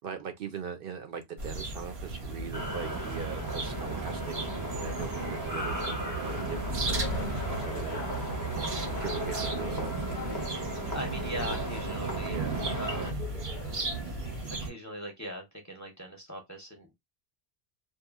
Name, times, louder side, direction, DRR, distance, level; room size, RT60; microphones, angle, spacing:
voice 1, 0.0-4.3 4.7-8.0 9.0-9.9 12.2-13.1, right 7 dB, 65° right, 0.7 m, -41 dB
sound 1, 1.4-14.7, right 3 dB, 85° right, 1.2 m, -35 dB
sound 2, 2.5-13.1, right 1 dB, 20° right, 0.6 m, -36 dB
sound 3, 7.0-14.6, left 6 dB, 60° left, 0.7 m, -45 dB
voice 2, 10.9-12.4 12.7-13.2 14.6-16.9, equal, 20° left, 0.7 m, -40 dB
2.7 x 2.4 x 2.3 m
omnidirectional pair, 1.0 m